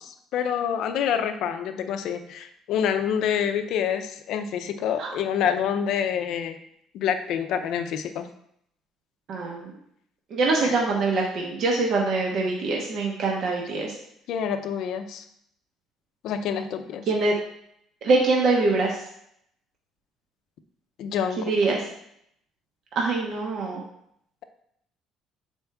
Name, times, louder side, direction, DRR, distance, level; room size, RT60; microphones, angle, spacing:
voice 1, 0.0-6.6 6.9-8.3 10.6-10.8 14.3-15.2 16.2-17.1 21.0-21.5, left 8 dB, 55° left, 8 dB, 0.6 m, -27 dB
voice 2, 9.3-9.7 10.3-13.9 17.1-17.3 18.0-19.0 21.4-21.8 23.0-23.8, right 3 dB, 45° right, -1 dB, 0.9 m, -24 dB
6.8 x 4.4 x 3.5 m, 0.73 s
cardioid pair, 175°, 0 cm